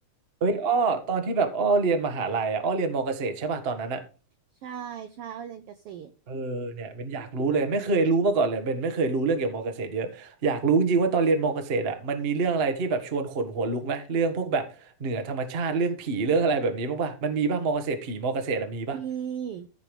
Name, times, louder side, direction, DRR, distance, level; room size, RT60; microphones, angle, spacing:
voice 1, 0.4-4.0 6.3-19.0, right 4 dB, 45° right, 7 dB, 0.7 m, -26 dB
voice 2, 4.6-6.1 18.9-19.7, right 8 dB, 75° right, 10 dB, 1.3 m, -36 dB
14.5 x 4.8 x 5.2 m, 0.34 s
omnidirectional pair, 3.5 m